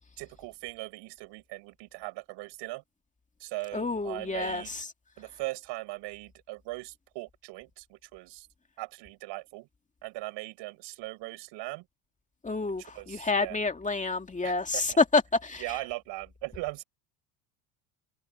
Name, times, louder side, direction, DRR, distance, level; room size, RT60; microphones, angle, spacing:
voice 1, 0.2-2.8 3.4-4.8 5.2-8.5 8.8-9.7 10.0-11.9 12.8-13.6 14.4-15.0 15.6-16.8, right 21 dB, 65° right, 4.8 m, -39 dB
voice 2, 3.7-4.6 12.4-15.6, left 3 dB, 15° left, 2.4 m, -28 dB
supercardioid pair, 100°, 45 cm